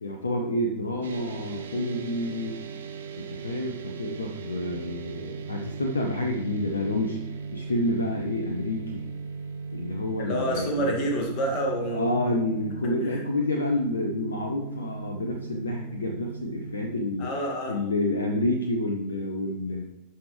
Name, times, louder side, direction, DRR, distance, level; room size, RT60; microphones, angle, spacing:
voice 1, 0.0-2.6 3.2-7.2 7.5-9.1 9.7-10.9 11.9-19.8, left 1 dB, 75° left, 2 dB, 0.7 m, -29 dB
sound 1, 1.0-17.0, right 5 dB, 65° right, 0.8 m, -38 dB
voice 2, 10.2-12.1 13.1-13.2 17.2-17.7, right 1 dB, 40° left, 0 dB, 2.1 m, -28 dB
11.0 x 5.6 x 3.3 m, 0.89 s
figure-of-eight pair, 90°, 0 cm